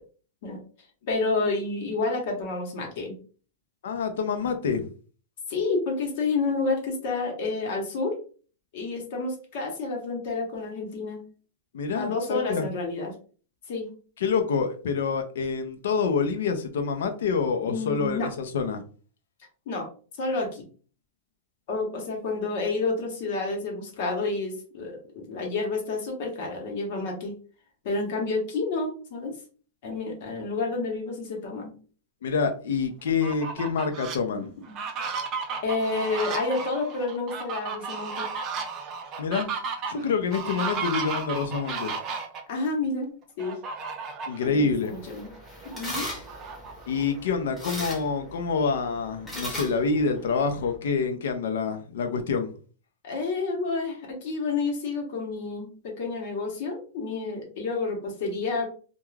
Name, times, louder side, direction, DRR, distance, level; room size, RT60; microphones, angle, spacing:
voice 1, 1.1-3.2 5.5-8.2 8.7-11.2 11.9-13.1 13.7-13.9 17.6-18.3 19.7-19.9 20.2-20.6 21.7-27.3 27.8-29.3 29.8-31.7 34.3-34.8 35.6-38.3 42.5-43.6 44.4-45.3 45.6-46.1 53.0-58.7, left 3 dB, 55° left, 0.9 m, -29 dB
voice 2, 3.8-4.9 11.7-12.7 14.2-18.8 32.2-34.5 39.2-39.5 39.9-41.9 44.3-44.9 46.9-52.5, left 5 dB, 85° left, 0.5 m, -27 dB
Fowl, 33.1-34.2 34.6-42.4 43.4-44.5 44.9-45.0 45.4-47.1, right 5 dB, 30° right, 0.4 m, -34 dB
sound 1, 44.7-50.8, equal, 5° left, 0.7 m, -39 dB
2.3 x 2.2 x 3.1 m
supercardioid pair, 155°, 0 cm